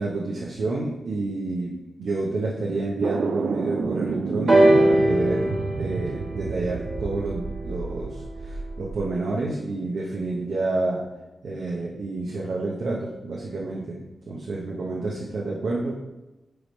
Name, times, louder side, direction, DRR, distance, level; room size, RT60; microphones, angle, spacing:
voice 1, 0.0-11.1 11.4-14.0 14.3-16.0, right 2 dB, 85° right, -3 dB, 0.8 m, -29 dB
sound 1, 3.0-9.1, right 4 dB, 70° right, 0.4 m, -30 dB
sound 2, 4.5-8.3 9.2-9.3, right 1 dB, 45° right, 1.3 m, -22 dB
4.9 x 4.8 x 5.3 m, 1.0 s
wide cardioid pair, 175°, 0 cm